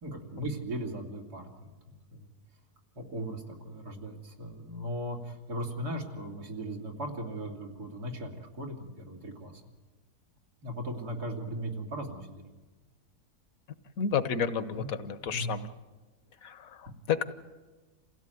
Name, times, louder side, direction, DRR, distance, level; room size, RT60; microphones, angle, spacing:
voice 1, 0.0-2.3 3.0-9.6 10.6-12.4 14.7-14.9 15.2-15.5, right 1 dB, 85° right, 1 dB, 3.5 m, -38 dB
voice 2, 14.0-15.7 16.4-17.3, left 7 dB, 65° left, 12 dB, 1.5 m, -31 dB
28.5 x 16.5 x 9.3 m, 1.3 s
omnidirectional pair, 1.6 m